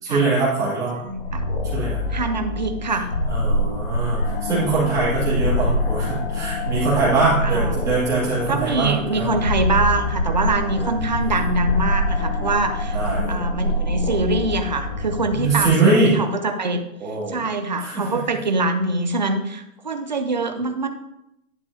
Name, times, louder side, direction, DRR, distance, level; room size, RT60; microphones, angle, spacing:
voice 1, 0.0-1.0 1.7-2.0 3.3-9.3 10.8-10.9 12.9-13.2 15.3-16.1 17.0-17.4 17.8-18.1, right 3 dB, 10° right, -10 dB, 2.6 m, -22 dB
voice 2, 1.0-1.4 2.1-3.1 7.4-7.8 8.5-13.0 13.3-16.8 17.3-20.9, right 2 dB, 35° right, 6 dB, 0.4 m, -24 dB
sound 1, 1.1-15.7, left 1 dB, 40° left, 0.8 m, -25 dB
10.5 x 6.5 x 2.8 m, 0.86 s
hypercardioid pair, 170°, 43 cm